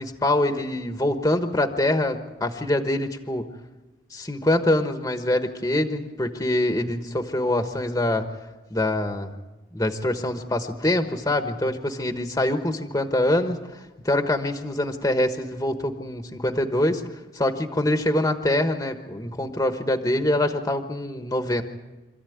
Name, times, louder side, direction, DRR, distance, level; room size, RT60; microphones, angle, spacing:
voice 1, 0.0-3.5 4.1-8.2 8.7-9.3 9.7-13.6 14.0-17.0 17.3-21.6, left 1 dB, 20° left, 7 dB, 1.2 m, -24 dB
26.0 x 14.5 x 9.4 m, 1.1 s
head